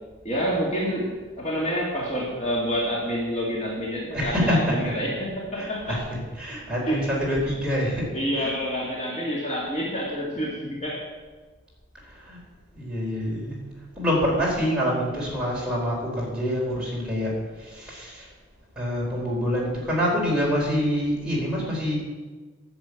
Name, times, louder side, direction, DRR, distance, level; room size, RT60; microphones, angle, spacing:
voice 1, 0.2-6.0 6.9-7.1 8.1-11.1, equal, 35° left, -3 dB, 2.2 m, -28 dB
voice 2, 4.1-4.7 5.6-6.0 6.4-8.1 8.4-8.5 12.1-12.4 12.7-13.6 14.0-18.3 18.8-22.0, equal, 5° right, -6 dB, 4.1 m, -26 dB
11.0 x 7.2 x 8.2 m, 1.3 s
head